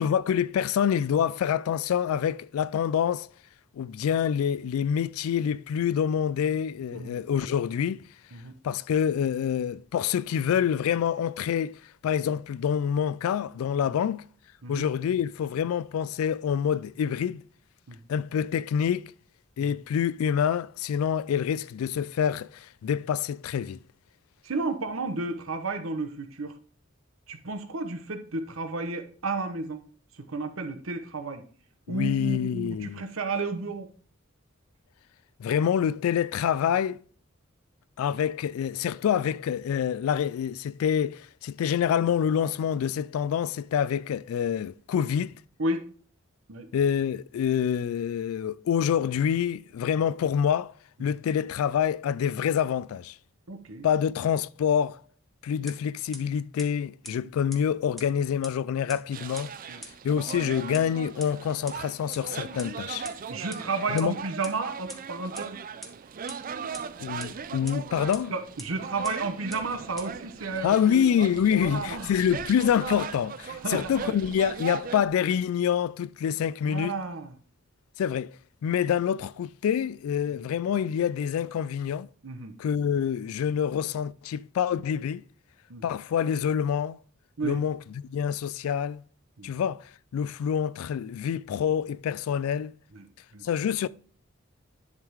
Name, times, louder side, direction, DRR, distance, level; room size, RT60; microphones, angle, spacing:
voice 1, 0.0-3.3 3.7-8.0 8.6-14.2 14.7-17.4 18.1-19.1 19.6-23.8 31.9-33.0 35.4-37.0 38.0-45.4 46.7-50.7 51.0-53.2 53.8-55.0 55.4-59.5 60.0-63.1 63.9-64.1 67.0-68.3 70.6-77.0 78.0-78.4 78.6-82.1 82.6-85.2 85.8-87.0 87.4-87.8 88.1-89.0 89.4-92.7 93.4-93.9, left 8 dB, 85° left, 0.3 m, -26 dB
voice 2, 24.4-26.6 27.3-29.8 30.2-31.4 31.9-33.9 45.6-45.8 46.5-46.7 51.0-51.1 53.5-53.9 59.7-59.8 63.3-65.6 68.3-71.1 71.5-72.2 73.5-74.1 76.6-77.4 80.3-80.5 82.2-82.5 85.7-85.8 87.4-87.6 89.4-89.5 92.9-93.1 93.3-93.4, right 3 dB, 70° right, 1.0 m, -32 dB
sound 1, 55.7-55.8 56.1-56.2 56.6-56.7 57.0-57.1 57.5-57.6 58.0-58.1 58.4-58.5 58.9-59.0 59.4-59.5 59.8-59.9 60.3-60.4 60.7-60.8 61.2-61.3 61.7-61.8 62.1-62.2 62.6-62.7 63.0-63.1 63.5-63.6 64.0-64.1 64.4-64.5 64.9-65.0 65.3-65.4 65.8-65.9 66.3-66.4 66.7-66.8 67.2-67.3 67.7-67.8 68.1-68.2 68.6-68.7 69.0-69.1 69.5-69.6 70.0-70.1, equal, ahead, 1.2 m, -39 dB
sound 2, 59.1-75.1, right 6 dB, 40° right, 0.4 m, -39 dB
10.5 x 3.7 x 4.7 m
head